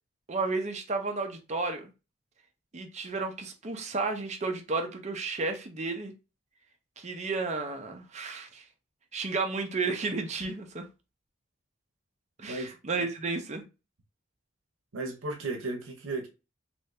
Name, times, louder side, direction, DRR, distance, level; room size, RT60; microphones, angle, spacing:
voice 1, 0.3-1.9 2.7-6.1 7.0-8.6 9.1-10.9 12.4-13.6, right 3 dB, 35° right, 0.6 m, -32 dB
voice 2, 14.9-16.3, right 2 dB, 90° right, 0.7 m, -34 dB
2.7 x 2.6 x 3.2 m
head